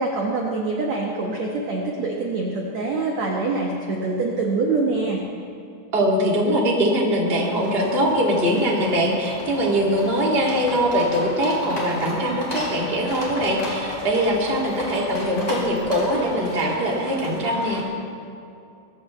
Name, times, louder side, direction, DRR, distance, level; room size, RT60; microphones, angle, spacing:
voice 1, 0.0-5.2, right 3 dB, 60° right, -2 dB, 2.0 m, -25 dB
voice 2, 5.9-17.8, equal, 20° right, -3 dB, 1.9 m, -22 dB
sound 1, 7.3-17.8, left 1 dB, 20° left, 3.8 m, -34 dB
23.5 x 15.5 x 3.3 m, 2.6 s
omnidirectional pair, 4.6 m